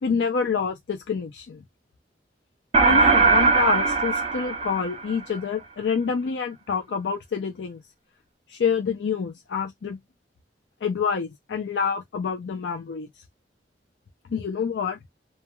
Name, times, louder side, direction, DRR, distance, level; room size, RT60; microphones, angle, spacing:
voice 1, 0.0-1.6 2.8-7.8 8.5-10.0 10.8-13.1 14.3-15.0, left 6 dB, 80° left, 0.4 m, -27 dB
sound 1, 2.7-5.4, right 4 dB, 35° right, 0.5 m, -20 dB
2.2 x 2.2 x 2.9 m
head